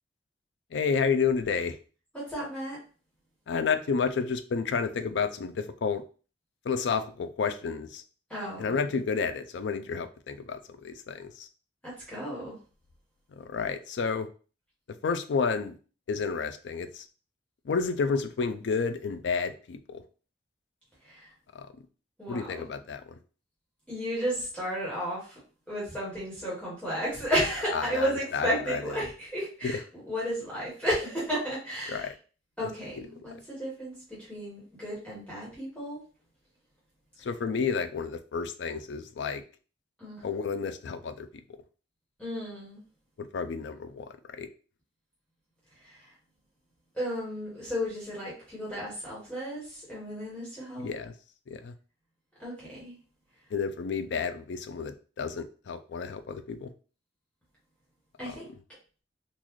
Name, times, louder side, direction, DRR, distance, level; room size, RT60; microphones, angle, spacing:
voice 1, 0.7-1.8 3.5-6.0 6.6-8.0 8.6-11.5 13.3-14.3 15.0-15.8 16.1-17.1 17.6-20.0 21.5-21.7 22.3-23.2 27.7-29.0 29.6-29.7 31.9-32.1 32.9-33.0 37.2-39.4 40.2-41.4 43.2-44.5 50.8-51.1 51.5-51.7 53.5-56.7 58.2-58.4, left 5 dB, 65° left, 10 dB, 0.4 m, -31 dB
voice 2, 2.1-2.8 8.3-8.8 11.8-12.6 21.0-21.3 22.2-22.6 23.9-25.4 25.7-32.1 32.6-36.0 40.0-40.2 42.2-42.8 45.8-46.1 46.9-50.9 52.4-52.9 58.2-58.5, equal, 5° left, -8 dB, 1.3 m, -33 dB
3.9 x 2.3 x 3.0 m, 0.38 s
head